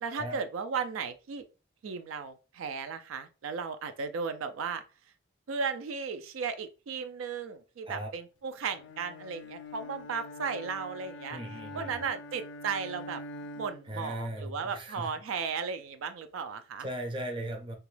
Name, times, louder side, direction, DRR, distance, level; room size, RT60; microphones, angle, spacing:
voice 1, 0.0-1.4 1.8-4.8 5.5-11.4 11.7-13.2 13.6-16.9, right 5 dB, 90° right, 0.4 m, -35 dB
Bowed string instrument, 8.7-14.0, left 2 dB, 65° left, 0.3 m, -44 dB
voice 2, 11.3-12.0 13.8-15.1 16.8-17.8, right 1 dB, 25° right, 0.5 m, -38 dB
2.9 x 2.3 x 3.2 m
head